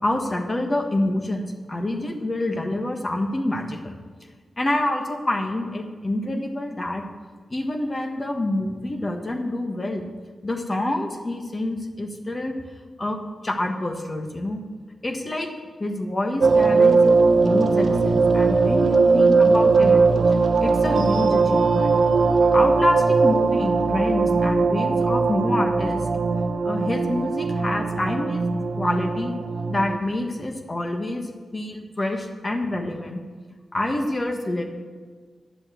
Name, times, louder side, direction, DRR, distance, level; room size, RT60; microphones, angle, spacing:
voice 1, 0.0-4.0 4.6-7.0 7.5-10.1 10.4-12.5 13.0-13.2 13.4-14.6 15.0-15.5 15.8-20.0 20.3-22.0 22.5-26.0 26.6-29.3 29.7-33.2 33.7-34.6, left 1 dB, 30° left, 4 dB, 1.5 m, -27 dB
sound 1, 16.4-30.0, right 4 dB, 65° right, 0.8 m, -19 dB
10.5 x 7.7 x 7.6 m, 1.5 s
cardioid pair, 85°, 0 cm